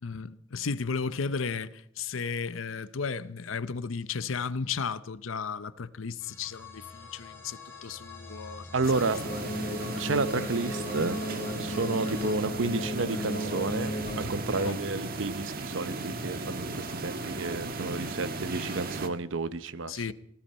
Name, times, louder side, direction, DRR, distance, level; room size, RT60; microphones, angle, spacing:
voice 1, 0.0-9.0 14.6-14.8 19.9-20.1, left 5 dB, 85° left, 0.7 m, -34 dB
sound 1, 6.2-12.4, left 4 dB, 15° left, 3.9 m, -46 dB
voice 2, 8.7-9.2 10.0-11.2 11.6-20.1, right 3 dB, 70° right, 0.8 m, -31 dB
sound 2, 8.8-19.1, right 2 dB, 50° right, 1.5 m, -36 dB
sound 3, 9.2-14.2, left 1 dB, 50° left, 2.9 m, -35 dB
19.0 x 16.0 x 4.3 m
head